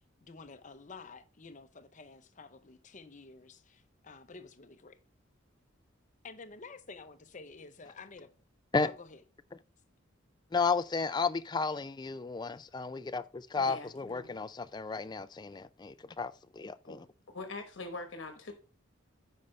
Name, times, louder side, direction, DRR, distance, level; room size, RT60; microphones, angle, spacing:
voice 1, 0.2-5.0 6.2-8.3 8.8-9.2, left 4 dB, 40° left, 0.7 m, -50 dB
voice 2, 10.5-17.0, left 4 dB, 20° left, 0.3 m, -33 dB
voice 3, 13.6-14.4 16.8-17.0 17.3-18.5, left 3 dB, 65° left, 1.1 m, -43 dB
9.3 x 5.4 x 3.2 m
head